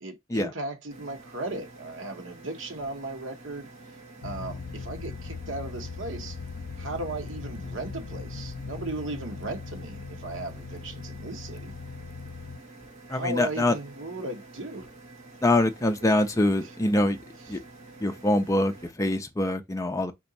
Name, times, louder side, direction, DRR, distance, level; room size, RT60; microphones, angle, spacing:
voice 1, 0.0-3.7 4.2-6.4 6.8-11.7 13.1-14.9, right 2 dB, 70° right, 1.1 m, -36 dB
sound 1, 0.9-18.9, right 2 dB, 35° right, 1.7 m, -49 dB
sound 2, 4.2-12.6, left 5 dB, 90° left, 0.4 m, -39 dB
voice 2, 13.1-13.8 15.4-17.2 17.5-17.6 18.0-20.1, left 1 dB, 15° left, 0.5 m, -24 dB
4.3 x 2.9 x 4.0 m
head